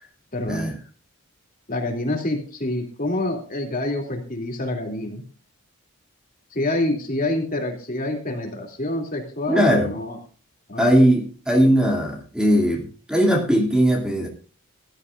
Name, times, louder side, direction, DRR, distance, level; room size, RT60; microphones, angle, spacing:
voice 1, 0.3-0.7 1.7-5.2 6.5-10.2 10.7-10.9, left 1 dB, 40° left, 2 dB, 2.8 m, -27 dB
voice 2, 9.5-9.9 10.8-14.3, equal, 5° right, 0 dB, 2.7 m, -19 dB
18.5 x 12.5 x 2.5 m, 0.40 s
head